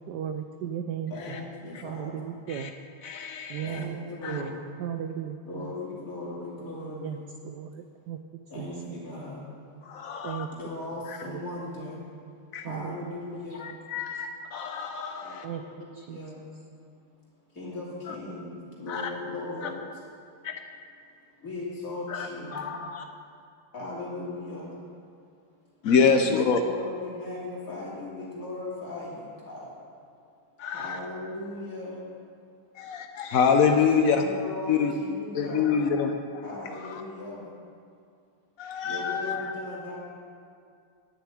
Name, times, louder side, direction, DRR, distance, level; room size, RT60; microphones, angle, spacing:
voice 1, 0.1-1.4 1.8-2.7 3.5-4.0 4.3-4.5 4.8-5.7 7.0-7.2 7.4-8.2 8.6-8.7 10.2-10.5 11.2-11.4 12.6-13.0 13.7-13.8 15.4-15.6 15.9-16.2, right 9 dB, 80° right, 7 dB, 0.9 m, -35 dB
voice 2, 1.1-2.2 3.6-4.6 5.4-7.3 8.5-9.5 10.5-12.0 12.6-13.7 15.1-16.4 17.5-19.8 21.4-22.6 23.7-24.7 25.9-29.7 30.7-32.0 33.9-35.8 36.4-37.5 38.8-40.0, left 2 dB, 40° left, -6 dB, 3.2 m, -38 dB
voice 3, 3.0-3.8 4.2-4.4 9.8-10.5 11.1-11.2 12.5-12.7 13.6-15.5 18.1-18.2 18.9-19.1 19.6-19.7 20.4-20.5 22.1-23.1 25.8-26.6 30.6-31.0 32.8-34.2 34.7-34.9 35.3-36.4 36.8-37.0 38.6-39.5, left 6 dB, 90° left, 5 dB, 0.7 m, -26 dB
10.5 x 6.9 x 9.1 m, 2.3 s
omnidirectional pair, 2.4 m